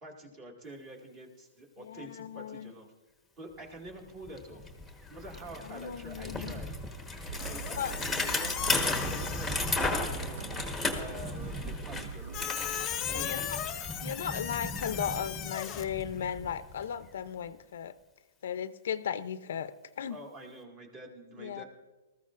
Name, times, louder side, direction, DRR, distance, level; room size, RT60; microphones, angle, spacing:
voice 1, 0.0-2.9 3.4-4.7 5.1-6.7 7.4-12.5 13.1-13.4 20.1-21.6, right 1 dB, 25° right, 1 dB, 2.0 m, -47 dB
voice 2, 1.8-2.7 5.6-6.6 7.7-7.9 10.9-11.4 13.1-13.6 14.0-18.0 18.4-20.2 21.3-21.6, left 8 dB, 70° left, 13 dB, 0.6 m, -36 dB
Bicycle, 3.9-4.0 4.2-17.1, left 2 dB, ahead, 1.2 m, -35 dB
sound 1, 7.3-12.4, right 8 dB, 60° right, 0.4 m, -42 dB
Squeak, 7.4-10.1 12.3-15.8, left 10 dB, 20° left, 0.9 m, -38 dB
19.5 x 14.0 x 2.5 m, 1.2 s
hypercardioid pair, 160°, 0 cm